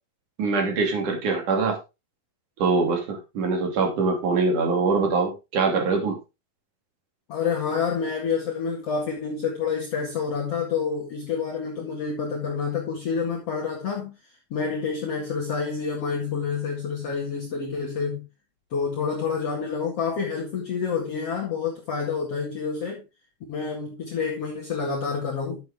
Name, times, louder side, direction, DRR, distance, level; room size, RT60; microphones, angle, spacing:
voice 1, 0.4-1.8 2.6-6.2, right 4 dB, 60° right, 4.1 m, -23 dB
voice 2, 7.3-14.1 14.5-18.3 18.7-23.0 23.5-25.6, left 5 dB, 45° left, 2.8 m, -28 dB
11.5 x 7.7 x 3.6 m
omnidirectional pair, 4.1 m